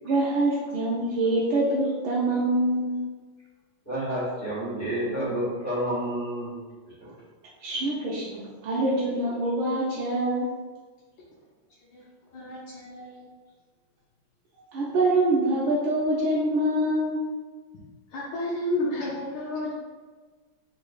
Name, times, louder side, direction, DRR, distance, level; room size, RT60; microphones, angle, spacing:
voice 1, 0.0-2.9 7.6-10.5 14.7-17.2, right 1 dB, 90° right, -6 dB, 1.4 m, -25 dB
voice 2, 3.8-6.5 7.0-7.1, right 1 dB, 10° left, -14 dB, 1.2 m, -29 dB
voice 3, 12.3-13.3 18.1-19.7, left 1 dB, 75° left, -6 dB, 1.3 m, -31 dB
3.9 x 3.2 x 2.3 m, 1.4 s
omnidirectional pair, 2.2 m